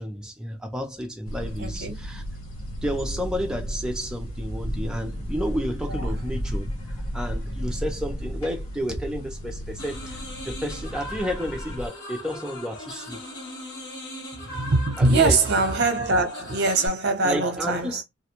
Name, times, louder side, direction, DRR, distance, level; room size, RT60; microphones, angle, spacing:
voice 1, 0.0-2.2 2.8-6.7 7.1-10.2 10.4-13.2 15.0-15.4 17.2-18.0, equal, 5° right, 0.4 m, -31 dB
sound 1, 1.3-11.9, equal, 80° left, 0.8 m, -33 dB
voice 2, 1.6-1.9 5.9-6.2 14.4-18.0, right 3 dB, 50° right, 0.7 m, -23 dB
sound 2, 9.8-16.9, left 1 dB, 50° left, 1.1 m, -39 dB
2.4 x 2.1 x 2.9 m
head